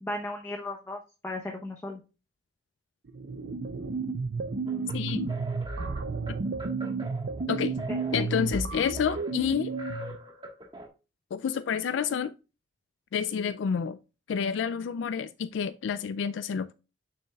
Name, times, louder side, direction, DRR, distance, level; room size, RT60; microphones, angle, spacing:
voice 1, 0.0-2.0 7.9-8.3, left 1 dB, 15° left, 0.8 m, -36 dB
sound 1, 3.1-10.2, right 4 dB, 65° right, 0.6 m, -32 dB
sound 2, 4.7-10.9, equal, 25° right, 1.4 m, -42 dB
voice 2, 4.9-5.4 7.5-7.8 8.1-9.7 11.3-12.3 13.1-14.0 14.3-16.7, left 7 dB, 85° left, 0.3 m, -29 dB
6.9 x 6.1 x 2.3 m
head